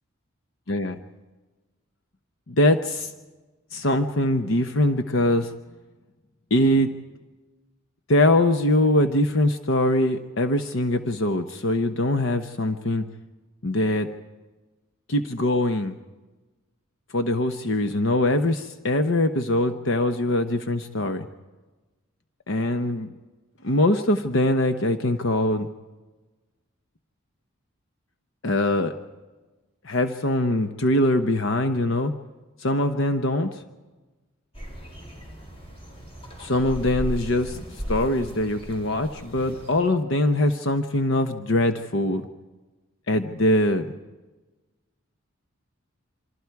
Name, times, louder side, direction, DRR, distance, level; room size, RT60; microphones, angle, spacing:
voice 1, 2.5-3.1 3.7-5.5 6.5-6.9 8.1-13.1 13.6-14.1 15.1-15.9 17.1-21.3 22.5-23.1 23.6-25.7 28.4-28.9 29.8-32.1 32.6-33.5 36.4-37.6 37.9-42.3 43.1-43.9, left 1 dB, 60° left, 8 dB, 1.0 m, -22 dB
sound 1, 34.5-39.8, equal, 25° left, 4.5 m, -36 dB
27.5 x 25.0 x 4.8 m, 1.2 s
head